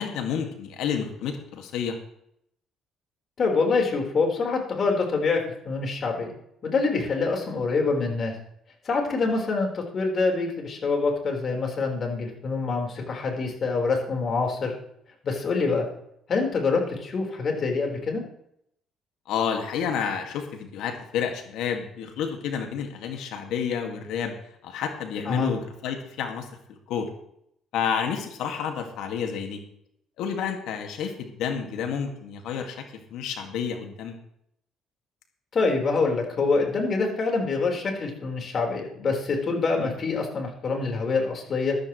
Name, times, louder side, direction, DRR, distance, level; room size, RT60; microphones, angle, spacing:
voice 1, 0.0-1.9 19.3-24.3 24.6-26.5 26.9-27.1 27.7-29.6 30.2-32.8 33.1-34.2 39.8-39.9, left 7 dB, 75° left, 4 dB, 2.0 m, -30 dB
voice 2, 3.4-6.3 6.6-8.3 8.8-14.7 15.2-15.8 16.3-18.2 25.3-25.5 35.5-41.8, left 4 dB, 50° left, 1 dB, 4.3 m, -25 dB
14.0 x 13.0 x 3.2 m, 0.73 s
supercardioid pair, 70°, 0 cm